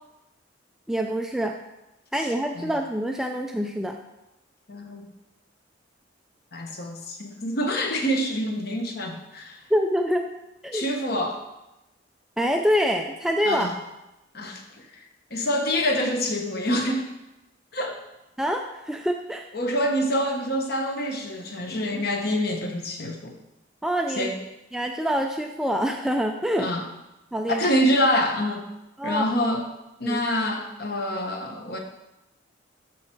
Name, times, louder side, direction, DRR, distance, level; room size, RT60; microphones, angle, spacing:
voice 1, 0.9-1.6 2.1-4.0 9.7-10.3 10.6-10.9 12.4-13.7 18.4-19.5 23.8-24.3 24.7-26.7 27.3-27.7 29.0-29.3 30.0-30.2, equal, 5° right, 3 dB, 0.4 m, -25 dB
voice 2, 4.7-5.1 6.5-9.6 10.7-11.4 13.5-13.7 14.3-14.6 15.3-17.1 17.7-17.9 19.5-23.3 24.2-24.4 26.6-26.8 27.5-28.7 29.0-29.7 30.0-31.8, equal, 50° left, 3 dB, 1.1 m, -26 dB
12.0 x 4.6 x 4.5 m, 0.96 s
head